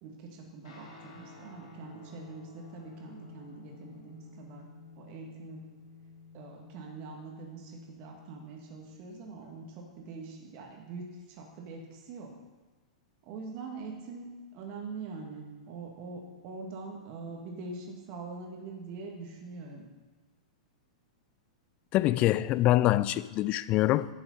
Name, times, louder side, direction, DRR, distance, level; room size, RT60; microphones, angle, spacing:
voice 1, 0.0-4.7 5.0-5.6 6.3-12.3 13.3-19.9, right 4 dB, 40° right, 1.9 m, -43 dB
Guitar, 0.6-9.5, left 5 dB, 60° left, 2.8 m, -53 dB
voice 2, 21.9-24.1, left 15 dB, 35° left, 0.4 m, -25 dB
10.5 x 7.1 x 5.4 m
figure-of-eight pair, 105°, 4 cm